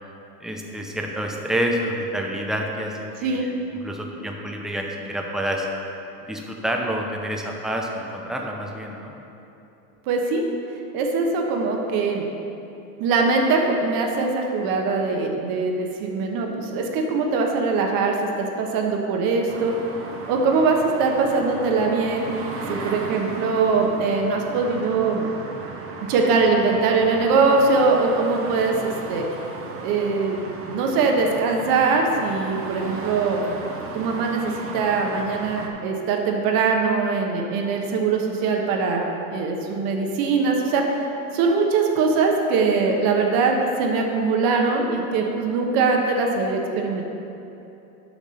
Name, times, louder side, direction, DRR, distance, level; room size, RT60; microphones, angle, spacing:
voice 1, 0.4-5.7 6.2-9.1, equal, ahead, 1 dB, 0.7 m, -28 dB
voice 2, 10.1-10.4 10.9-12.2 13.0-19.7 20.3-22.3 22.7-25.3 26.1-29.2 29.7-33.4 33.9-40.9 41.3-47.0, right 4 dB, 50° right, 1 dB, 1.3 m, -22 dB
sound 1, 19.5-35.7, right 3 dB, 30° right, 1.0 m, -36 dB
7.2 x 5.9 x 5.7 m, 2.9 s
hypercardioid pair, 115°, 46 cm